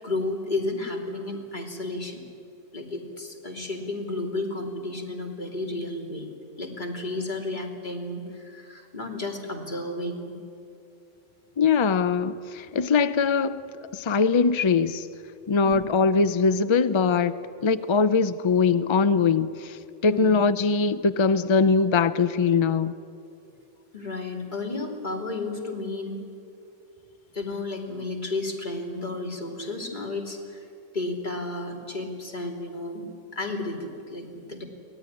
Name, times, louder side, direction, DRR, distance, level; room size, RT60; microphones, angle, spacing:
voice 1, 0.0-2.2 2.7-6.3 6.6-10.3 15.6-15.8 20.1-20.3 23.9-26.2 27.3-30.7 30.9-34.6, left 2 dB, 35° left, 0 dB, 3.1 m, -32 dB
voice 2, 11.6-13.6 13.9-15.1 15.5-17.3 17.6-22.9, left 5 dB, 50° left, 13 dB, 0.3 m, -22 dB
23.5 x 18.0 x 9.9 m, 2.7 s
omnidirectional pair, 1.3 m